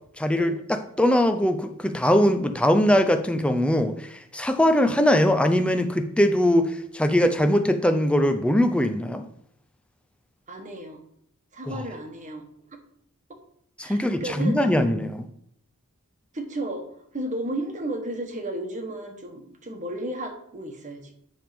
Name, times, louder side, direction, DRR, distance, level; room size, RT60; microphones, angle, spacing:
voice 1, 0.2-9.2 11.7-11.8 13.8-15.3, equal, 5° left, 8 dB, 0.5 m, -21 dB
voice 2, 10.5-11.0 11.5-12.4 13.8-14.7 16.3-21.1, right 1 dB, 35° right, 4 dB, 1.2 m, -33 dB
10.5 x 3.5 x 5.2 m, 0.70 s
head